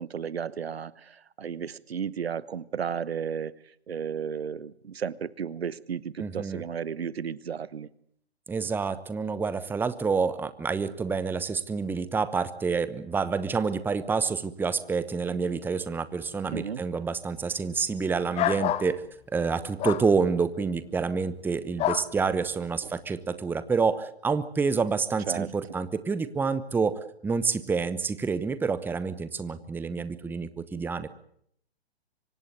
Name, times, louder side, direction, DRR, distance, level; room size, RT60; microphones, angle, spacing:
voice 1, 0.0-3.5 3.9-7.9 16.5-16.8 25.3-25.5, right 7 dB, 70° right, 19 dB, 1.2 m, -33 dB
voice 2, 6.2-6.6 8.5-19.0 19.3-31.1, right 5 dB, 5° right, 14 dB, 1.0 m, -28 dB
sound 1, 18.3-18.9 19.8-20.1 21.8-22.1, left 13 dB, 20° left, 1.0 m, -27 dB
25.0 x 17.0 x 9.4 m, 0.69 s
figure-of-eight pair, 120°, 32 cm